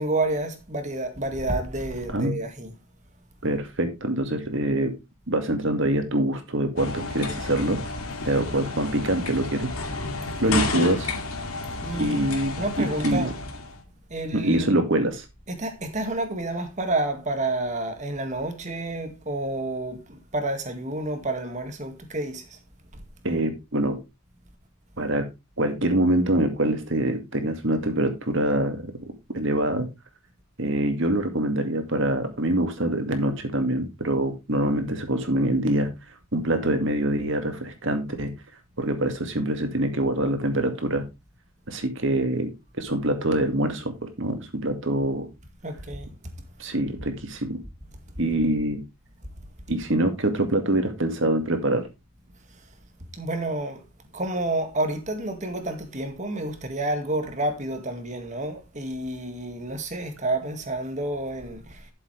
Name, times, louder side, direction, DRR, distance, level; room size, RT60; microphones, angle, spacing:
voice 1, 0.0-2.7 11.8-12.2 12.6-13.3 14.1-14.8 15.5-22.6 45.6-46.1 53.1-53.8 54.1-61.9, right 2 dB, 35° right, 2.0 m, -29 dB
voice 2, 3.4-4.9 5.3-7.8 8.2-9.7 10.4-11.1 12.0-13.3 14.3-15.2 23.2-24.0 25.0-25.3 25.6-28.9 29.3-29.9 30.6-35.9 36.3-38.3 38.8-41.0 41.7-42.5 42.8-45.3 46.6-47.6 48.2-48.8 49.7-51.9, right 1 dB, 55° right, 2.2 m, -25 dB
sound 1, 6.8-13.8, left 3 dB, 75° left, 2.5 m, -31 dB
12.5 x 7.3 x 3.4 m
head